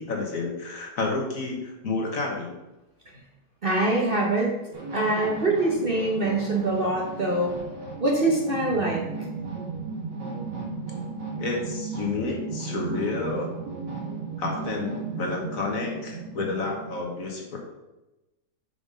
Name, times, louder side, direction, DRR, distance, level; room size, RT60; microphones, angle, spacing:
voice 1, 0.0-2.5 11.4-13.5 14.4-17.6, left 3 dB, 55° left, 0 dB, 1.6 m, -30 dB
voice 2, 3.6-4.5 4.9-7.6 8.0-9.0, right 2 dB, 40° right, -2 dB, 1.0 m, -24 dB
sound 1, 4.7-17.0, right 4 dB, 80° right, 2.3 m, -35 dB
5.9 x 5.4 x 5.1 m, 1.0 s
omnidirectional pair, 1.8 m